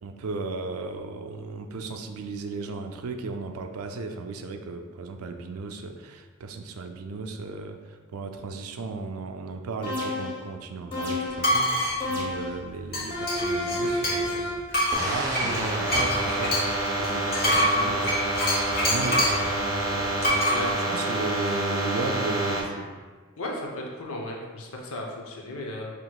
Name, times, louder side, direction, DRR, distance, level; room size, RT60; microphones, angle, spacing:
voice 1, 0.0-14.6 14.9-16.6 17.0-18.3 18.8-20.2 20.7-22.9, right 3 dB, 85° right, 6 dB, 0.4 m, -35 dB
sound 1, 9.8-10.5 10.9-11.5 12.0-12.6 13.1-14.7, left 1 dB, 25° left, 0.9 m, -30 dB
sound 2, 11.4-12.0 12.9-14.4 14.7-19.4 20.2-20.6, equal, 45° left, 1.0 m, -25 dB
sound 3, 14.9-22.6, right 1 dB, 15° right, 0.5 m, -28 dB
voice 2, 23.4-25.9, left 1 dB, 75° left, 0 dB, 0.7 m, -35 dB
5.9 x 3.0 x 2.3 m, 1.5 s
head